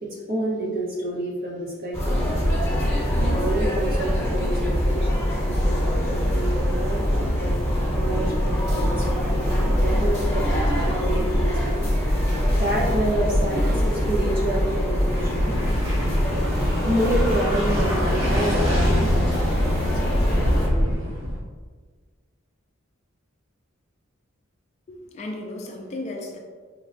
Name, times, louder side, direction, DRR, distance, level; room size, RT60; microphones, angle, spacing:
voice 1, 0.0-2.4 3.2-5.2 5.5-7.6 7.9-11.6 12.6-15.6 16.9-20.9, right 1 dB, 50° right, -4 dB, 0.8 m, -29 dB
sound 1, 1.9-20.7, equal, 15° left, 1.0 m, -23 dB
sound 2, 15.1-21.4, equal, 80° right, 1.1 m, -25 dB
voice 2, 24.9-26.4, left 2 dB, 35° left, 2 dB, 0.3 m, -34 dB
4.5 x 2.1 x 2.5 m, 1.5 s
head